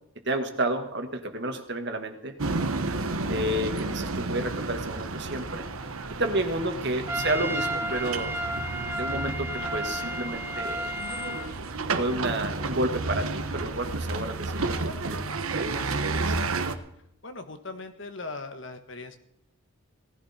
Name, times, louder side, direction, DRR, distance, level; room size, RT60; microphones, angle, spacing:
voice 1, 0.3-2.4 3.3-5.7 6.1-8.4 8.8-10.9 12.0-15.2 15.5-16.4, right 1 dB, 50° right, 5 dB, 1.9 m, -31 dB
sound 1, 2.4-16.7, right 3 dB, 80° right, 1.3 m, -31 dB
Trumpet, 7.1-11.5, equal, 10° right, 1.2 m, -32 dB
voice 2, 17.2-19.2, left 3 dB, 60° left, 7 dB, 1.7 m, -39 dB
18.0 x 15.0 x 4.4 m, 0.76 s
head